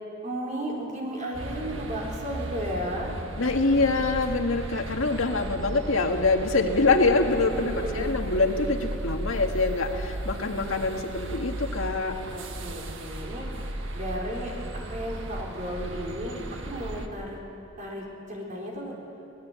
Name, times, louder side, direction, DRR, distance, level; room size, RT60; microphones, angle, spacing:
voice 1, 0.2-3.1 7.5-8.2 12.3-13.5 13.9-14.5 14.9-16.4 16.7-17.4 17.8-19.0, equal, 40° right, -2 dB, 4.6 m, -34 dB
sound 1, 1.3-17.1, right 1 dB, 65° right, 1.7 m, -35 dB
voice 2, 3.4-12.2, left 3 dB, 75° left, 4 dB, 1.8 m, -25 dB
24.0 x 18.0 x 8.3 m, 2.8 s
head